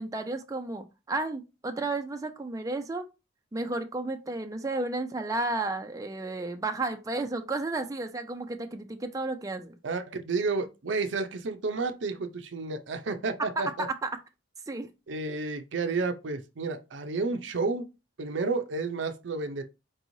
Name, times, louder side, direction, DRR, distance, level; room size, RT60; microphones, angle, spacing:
voice 1, 0.0-3.1 3.5-9.8 13.6-14.1 14.7-14.9, right 2 dB, 20° right, 0.4 m, -32 dB
voice 2, 9.8-13.9 15.1-17.8 18.2-19.6, right 3 dB, 75° right, 0.5 m, -31 dB
4.6 x 3.0 x 2.6 m
head